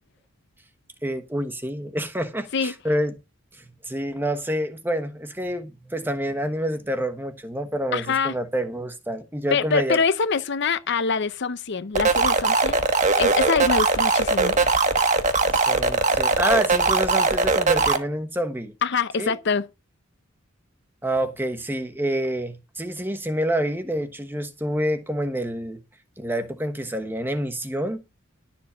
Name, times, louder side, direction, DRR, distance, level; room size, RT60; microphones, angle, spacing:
voice 1, 1.0-3.1 3.5-10.0 15.5-18.7 19.2-19.4 21.0-25.8 26.2-28.0, right 1 dB, 10° right, 1.2 m, -27 dB
voice 2, 7.9-8.3 9.5-12.8 13.2-14.6 18.8-19.7, left 5 dB, 60° left, 0.7 m, -24 dB
sound 1, 11.9-18.0, right 3 dB, 35° right, 1.4 m, -20 dB
12.0 x 7.3 x 5.0 m
head